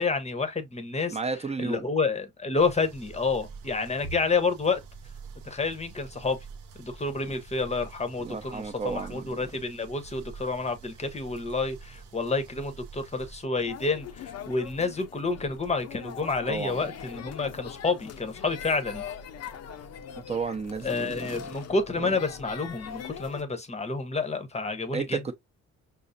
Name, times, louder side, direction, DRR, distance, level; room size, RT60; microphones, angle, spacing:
voice 1, 0.0-1.2 1.6-4.8 5.4-6.4 6.8-19.0 20.8-25.3, left 4 dB, 20° left, 0.8 m, -29 dB
voice 2, 1.1-1.9 8.2-9.4 16.5-16.9 20.3-21.5 22.0-22.1 24.9-25.3, right 4 dB, 20° right, 0.7 m, -33 dB
sound 1, 2.5-13.4, right 5 dB, 85° right, 0.7 m, -46 dB
sound 2, 13.5-23.4, left 8 dB, 55° left, 0.6 m, -42 dB
5.4 x 2.0 x 2.5 m
cardioid pair, 90°, 30 cm